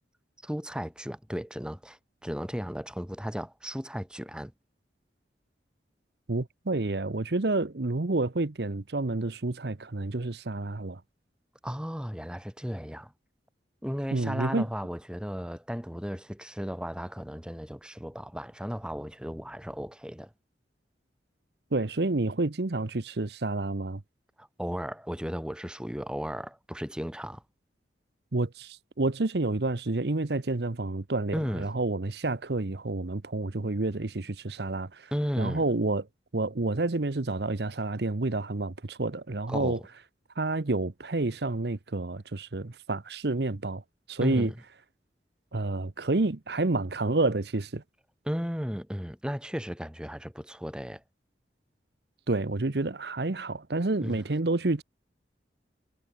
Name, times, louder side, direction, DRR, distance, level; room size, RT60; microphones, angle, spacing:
voice 1, 0.4-4.5 11.6-13.1 13.8-20.3 24.4-27.4 31.3-31.7 35.1-35.6 39.5-39.8 44.2-44.5 48.3-51.0 54.0-54.2, equal, 5° right, 3.8 m, -35 dB
voice 2, 6.3-11.0 14.1-14.7 21.7-24.0 28.3-35.1 35.4-36.1 36.3-39.8 40.4-43.8 44.1-44.5 45.5-47.8 52.3-54.8, right 2 dB, 65° right, 1.0 m, -29 dB
head